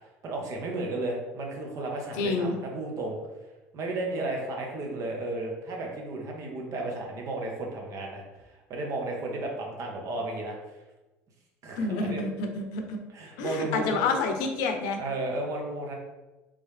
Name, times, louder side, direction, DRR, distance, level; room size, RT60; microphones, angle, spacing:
voice 1, 0.2-3.2 3.7-8.2 8.7-10.6 11.6-12.2 13.1-14.1 15.0-16.0, right 2 dB, 50° right, 0 dB, 1.2 m, -33 dB
voice 2, 2.2-2.6 11.8-13.0 13.4-15.0, left 4 dB, 70° left, 5 dB, 0.7 m, -28 dB
3.8 x 3.5 x 3.3 m, 1.1 s
supercardioid pair, 85°, 7 cm